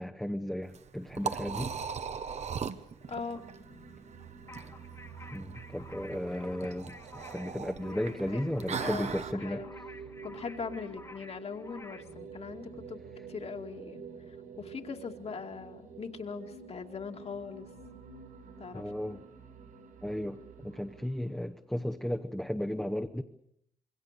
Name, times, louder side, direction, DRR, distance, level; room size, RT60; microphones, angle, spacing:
voice 1, 0.0-1.7 5.3-9.6 18.7-19.2 20.0-23.2, equal, 5° left, 4 dB, 1.0 m, -35 dB
Liquid, 0.6-9.3, right 6 dB, 55° right, 1.2 m, -39 dB
sound 1, 3.0-21.5, right 5 dB, 85° right, 7.7 m, -49 dB
voice 2, 3.1-3.4 8.3-9.1 9.3-9.7 10.2-13.0 13.3-14.0 14.6-17.7 18.6-18.8, left 5 dB, 45° left, 5 dB, 2.3 m, -40 dB
sound 2, 4.5-12.1, left 2 dB, 20° left, 1.4 m, -52 dB
27.0 x 22.5 x 6.7 m, 0.73 s
cardioid pair, 100°, 14 cm